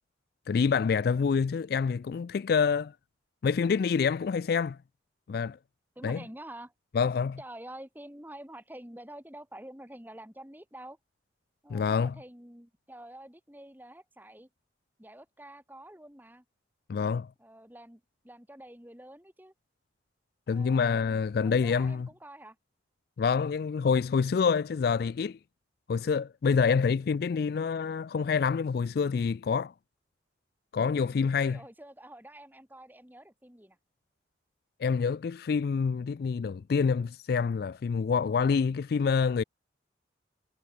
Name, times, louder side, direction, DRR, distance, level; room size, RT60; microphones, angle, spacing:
voice 1, 0.5-2.9 3.4-4.8 5.3-5.6 6.0-6.2 6.9-7.4 11.7-12.1 16.9-17.3 20.5-22.1 23.2-25.4 25.9-29.7 30.7-31.6 34.8-39.4, left 5 dB, 55° left, 0.3 m, -27 dB
voice 2, 6.0-6.7 7.4-11.0 11.6-14.5 15.0-16.4 17.4-19.5 20.5-22.6 31.1-33.8, right 1 dB, 10° right, 2.4 m, -48 dB
head